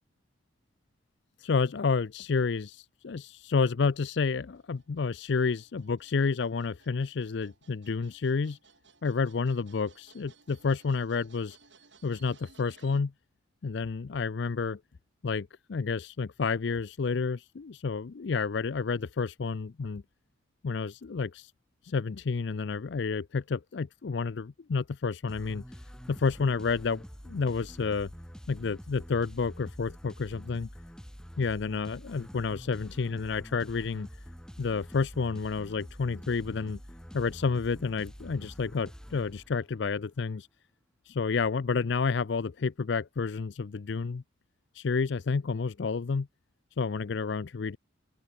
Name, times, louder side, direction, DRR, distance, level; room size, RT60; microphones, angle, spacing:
voice 1, 1.4-8.6 9.0-11.6 12.0-13.1 13.6-14.8 15.2-20.0 20.6-21.5 21.8-25.6 26.1-28.1 28.5-30.7 31.4-34.1 34.6-36.8 37.1-40.5 41.1-44.2 44.7-46.3 46.8-47.8, left 4 dB, 60° left, 0.4 m, -30 dB
sound 1, 3.9-13.0, right 5 dB, 65° right, 4.2 m, -61 dB
sound 2, 25.3-39.9, equal, 5° left, 3.5 m, -46 dB
open air
head